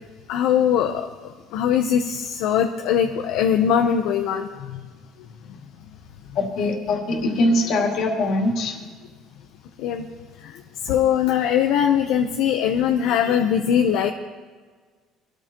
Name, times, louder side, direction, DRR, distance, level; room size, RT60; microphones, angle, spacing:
voice 1, 0.3-1.1 1.5-4.8 9.8-10.0 10.4-10.5 10.9-14.1, left 9 dB, 65° left, 4 dB, 0.8 m, -21 dB
voice 2, 6.4-8.8, left 2 dB, 50° left, 1 dB, 2.3 m, -22 dB
24.5 x 13.5 x 3.0 m, 1.5 s
cardioid pair, 180°, 0 cm